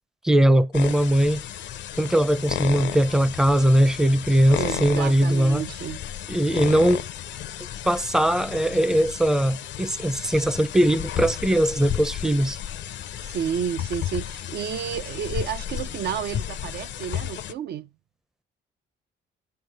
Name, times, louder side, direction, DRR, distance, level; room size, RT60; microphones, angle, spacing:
voice 1, 0.2-1.4 2.0-5.6 6.3-7.0 7.8-12.6, right 1 dB, 5° right, 0.5 m, -20 dB
sound 1, 0.7-17.5, left 11 dB, 65° left, 0.5 m, -33 dB
voice 2, 4.6-6.0 13.2-17.9, right 8 dB, 55° right, 0.4 m, -31 dB
9.3 x 3.3 x 6.4 m
cardioid pair, 90°, 20 cm